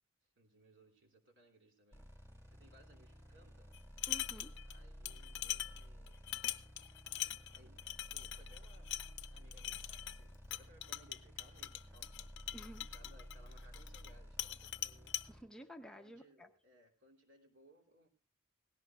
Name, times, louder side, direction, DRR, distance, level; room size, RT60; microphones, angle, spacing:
voice 1, 0.4-2.1 2.5-3.7 4.7-6.2 7.1-8.9 9.3-12.3 12.9-15.2 16.0-18.1, right 1 dB, 55° right, 2 dB, 3.0 m, -65 dB
sound 1, 1.9-15.4, equal, 15° right, 2.5 m, -54 dB
sound 2, 3.7-4.8 5.1-14.1 14.4-15.3, left 14 dB, 55° left, 0.6 m, -42 dB
voice 2, 4.1-4.5 12.5-12.9 15.3-16.5, right 1 dB, 5° left, 4 dB, 0.7 m, -52 dB
18.0 x 16.5 x 2.4 m, 0.31 s
head